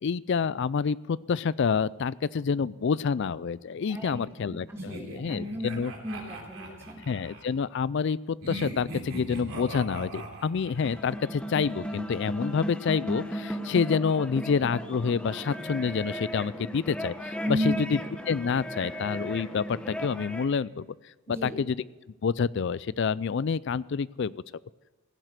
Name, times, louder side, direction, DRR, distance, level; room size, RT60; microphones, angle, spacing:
voice 1, 0.0-5.9 7.1-18.0 18.3-20.9 21.3-21.8 22.2-24.3, left 6 dB, 50° left, 20 dB, 0.3 m, -28 dB
voice 2, 3.9-5.7 6.0-7.0 17.4-17.9 21.3-21.6, equal, 10° right, 1 dB, 2.0 m, -33 dB
sound 1, 4.8-7.5 8.4-11.0, right 1 dB, 70° right, 3.2 m, -40 dB
sound 2, 10.7-20.5, equal, 5° left, 0.9 m, -36 dB
16.0 x 7.6 x 8.1 m, 1.2 s
head